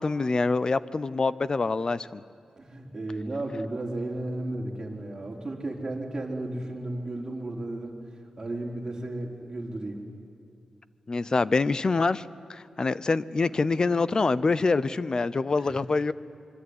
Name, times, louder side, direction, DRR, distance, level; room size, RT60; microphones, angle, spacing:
voice 1, 0.0-2.2 11.1-12.2 12.5-16.1, left 3 dB, 40° left, 17 dB, 0.7 m, -25 dB
voice 2, 2.6-8.0 8.4-10.0 15.6-15.8, right 2 dB, 25° right, -2 dB, 4.4 m, -34 dB
25.5 x 23.0 x 9.8 m, 2.4 s
wide cardioid pair, 105°, 2 cm